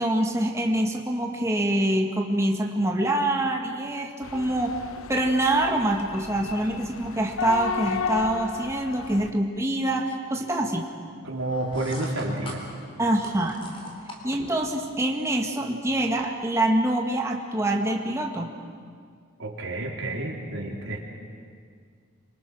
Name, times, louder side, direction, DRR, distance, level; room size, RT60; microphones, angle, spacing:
voice 1, 0.0-4.8 5.1-10.9 13.0-13.6 14.2-18.5, right 1 dB, 15° right, 1 dB, 1.8 m, -25 dB
sound 1, 4.2-9.3, left 6 dB, 80° left, 0.9 m, -34 dB
voice 2, 11.2-12.6 19.4-21.0, right 1 dB, 65° right, -1 dB, 4.0 m, -30 dB
sound 2, 11.4-14.7, equal, 25° left, 3.7 m, -41 dB
27.5 x 25.0 x 6.3 m, 2.1 s
head